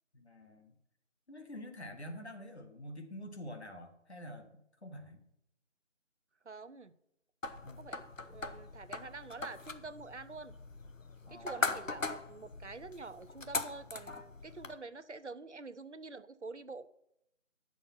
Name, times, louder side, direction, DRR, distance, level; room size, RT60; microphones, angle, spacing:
voice 1, 0.1-0.7 1.3-4.5 4.8-5.2 7.6-7.9 11.2-11.8, left 1 dB, 55° left, 4 dB, 1.6 m, -47 dB
voice 2, 6.4-6.9 7.8-10.5 11.3-16.9, right 3 dB, 65° right, 13 dB, 0.8 m, -47 dB
sound 1, 7.4-14.7, left 3 dB, 80° left, 1.1 m, -40 dB
10.0 x 7.0 x 5.8 m, 0.79 s
figure-of-eight pair, 170°, 38 cm